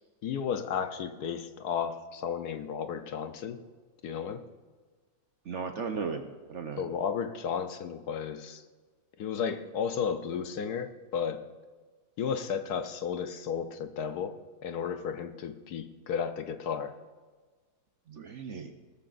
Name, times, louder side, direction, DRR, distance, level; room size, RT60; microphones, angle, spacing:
voice 1, 0.2-3.6 4.0-4.4 6.8-8.6 9.2-11.4 12.2-14.3 14.6-16.9, left 7 dB, 70° left, 9 dB, 1.2 m, -33 dB
voice 2, 5.4-6.9 18.1-18.7, right 5 dB, 55° right, 6 dB, 1.0 m, -36 dB
19.5 x 13.0 x 2.6 m, 1.4 s
omnidirectional pair, 1.8 m